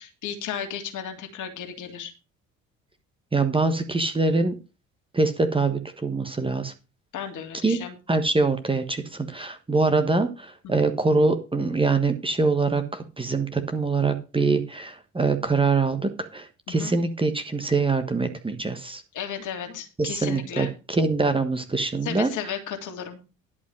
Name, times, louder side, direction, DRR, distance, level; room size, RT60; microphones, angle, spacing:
voice 1, 0.0-2.1 7.1-8.0 10.6-10.9 16.7-16.9 19.1-20.7 22.0-23.2, left 8 dB, 50° left, 6 dB, 2.4 m, -34 dB
voice 2, 3.3-4.6 5.1-6.7 7.6-7.8 8.1-19.0 20.0-22.3, right 3 dB, 15° right, 7 dB, 1.3 m, -24 dB
11.0 x 5.3 x 6.3 m, 0.31 s
figure-of-eight pair, 60°, 39 cm